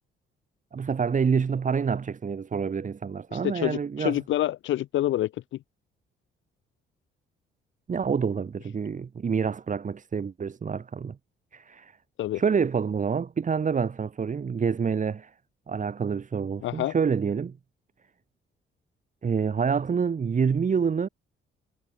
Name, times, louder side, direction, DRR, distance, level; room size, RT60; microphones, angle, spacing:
voice 1, 0.7-4.2 7.9-11.2 11.5-12.0 12.3-15.3 15.7-17.6 19.2-21.1, right 6 dB, 40° right, 2.5 m, -27 dB
voice 2, 3.3-5.3 12.2-12.4 16.6-16.9, left 14 dB, 75° left, 1.0 m, -27 dB
cardioid pair, 90°, 20 cm